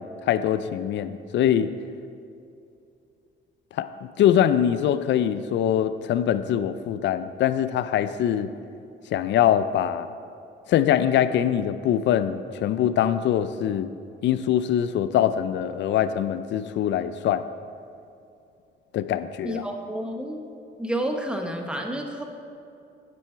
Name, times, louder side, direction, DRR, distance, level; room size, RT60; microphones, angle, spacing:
voice 1, 0.0-1.7 3.7-8.5 9.1-10.1 10.7-13.9 14.2-17.4 18.9-19.6, left 10 dB, 65° left, 12 dB, 0.4 m, -23 dB
voice 2, 19.4-20.5 20.8-22.2, right 1 dB, 5° right, 3 dB, 1.0 m, -30 dB
9.3 x 7.6 x 4.5 m, 2.6 s
cardioid pair, 90°, 20 cm